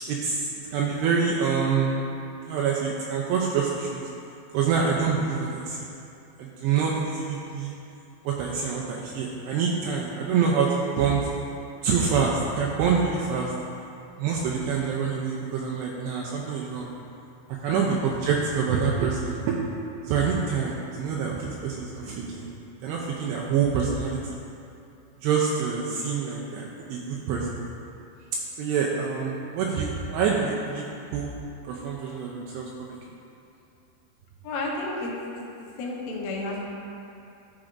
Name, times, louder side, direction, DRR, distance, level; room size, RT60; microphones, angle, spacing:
voice 1, 0.1-2.0 2.5-4.0 4.5-5.9 6.4-7.7 8.3-11.3 11.8-13.5 14.2-16.9 17.6-19.7 20.0-22.5 22.8-24.4 25.2-27.5 28.6-30.8 31.1-31.3 31.6-33.0, right 6 dB, 90° right, -3 dB, 2.4 m, -26 dB
voice 2, 17.7-18.2 34.4-36.6, left 2 dB, 80° left, -3 dB, 3.5 m, -33 dB
13.5 x 6.2 x 2.5 m, 2.7 s
omnidirectional pair, 5.4 m